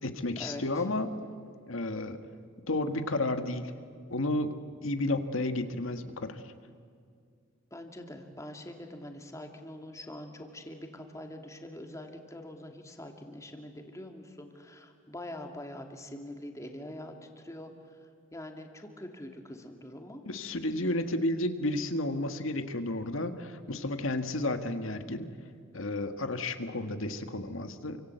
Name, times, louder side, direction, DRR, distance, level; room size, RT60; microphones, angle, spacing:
voice 1, 0.0-1.1 1.7-2.2 2.7-3.7 4.1-6.4 20.3-25.3 25.7-28.0, left 2 dB, 75° left, 7 dB, 1.8 m, -32 dB
voice 2, 7.7-20.2, left 1 dB, 15° left, 3 dB, 2.5 m, -44 dB
29.0 x 25.0 x 8.2 m, 2.2 s
head